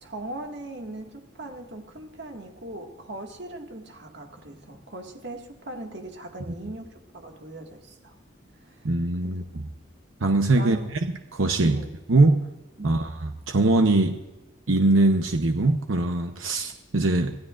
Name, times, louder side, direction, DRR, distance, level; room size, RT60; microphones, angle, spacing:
voice 1, 0.0-8.2 8.6-8.9 9.2-9.4 10.6-10.9 11.6-11.9 12.8-13.1, right 2 dB, 60° right, 2 dB, 2.0 m, -39 dB
voice 2, 8.8-9.4 10.2-10.8 11.3-11.8 12.1-12.4 12.8-13.1 13.5-14.2 14.7-17.4, right 2 dB, 90° right, 5 dB, 0.9 m, -21 dB
25.5 x 16.0 x 2.5 m, 1.0 s
head